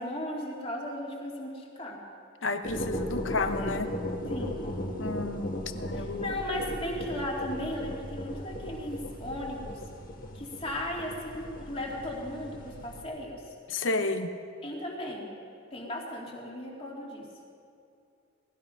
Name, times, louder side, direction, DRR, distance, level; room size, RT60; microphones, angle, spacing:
voice 1, 0.0-2.0 4.3-4.7 5.9-9.8 10.3-13.4 14.6-15.3 15.7-17.3, left 1 dB, 30° left, -1 dB, 2.5 m, -36 dB
voice 2, 2.4-3.9 5.0-6.3 13.7-14.3, left 3 dB, 70° left, 8 dB, 1.0 m, -31 dB
sound 1, 2.6-13.0, equal, 45° left, 1.5 m, -37 dB
19.0 x 13.0 x 5.8 m, 2.6 s
head